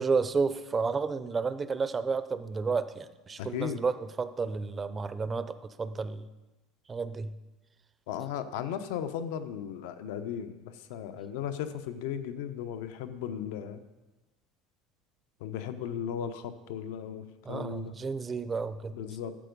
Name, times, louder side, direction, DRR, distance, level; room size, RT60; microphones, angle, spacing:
voice 1, 0.0-6.3 6.9-7.4 17.4-19.0, right 4 dB, 15° right, 12 dB, 0.4 m, -31 dB
voice 2, 3.4-3.8 8.1-13.8 15.4-17.9 18.9-19.4, left 9 dB, 85° left, 10 dB, 0.8 m, -36 dB
12.5 x 7.9 x 5.3 m, 1.1 s
cardioid pair, 180°, 0 cm